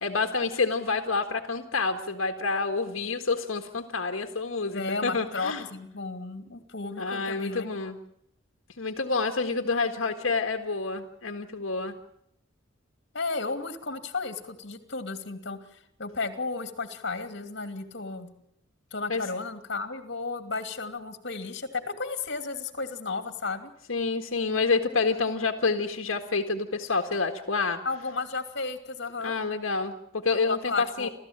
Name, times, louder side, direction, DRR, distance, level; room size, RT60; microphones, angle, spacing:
voice 1, 0.0-5.6 7.0-8.0 8.8-11.9 19.1-19.2 23.9-27.8 29.2-31.1, left 4 dB, 85° left, 5 dB, 1.7 m, -28 dB
voice 2, 4.7-7.7 13.1-18.3 18.9-23.7 27.8-29.4 30.4-31.1, left 3 dB, 60° left, 8 dB, 2.8 m, -33 dB
29.5 x 14.0 x 8.9 m, 0.75 s
head